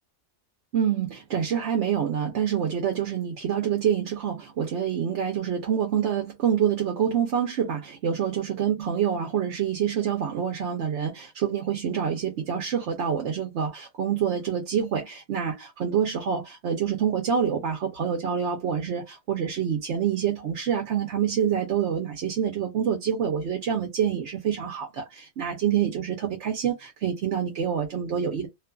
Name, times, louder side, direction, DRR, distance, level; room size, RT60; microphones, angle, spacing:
voice 1, 0.7-28.5, right 8 dB, 85° right, 1.0 m, -26 dB
2.5 x 2.4 x 2.2 m
omnidirectional pair, 1.1 m